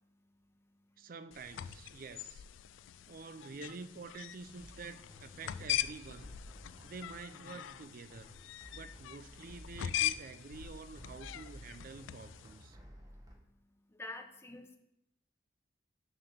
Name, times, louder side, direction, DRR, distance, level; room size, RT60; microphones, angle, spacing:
voice 1, 1.0-2.4 3.1-6.4 6.8-8.4 8.7-12.8, right 4 dB, 45° right, 12 dB, 0.4 m, -48 dB
sound 1, 1.3-12.6, left 12 dB, 75° left, 0.3 m, -41 dB
sound 2, 4.6-13.3, equal, 20° right, 1.4 m, -54 dB
voice 2, 13.9-14.8, left 2 dB, 15° left, 6 dB, 0.6 m, -46 dB
6.6 x 5.9 x 6.0 m, 0.83 s
head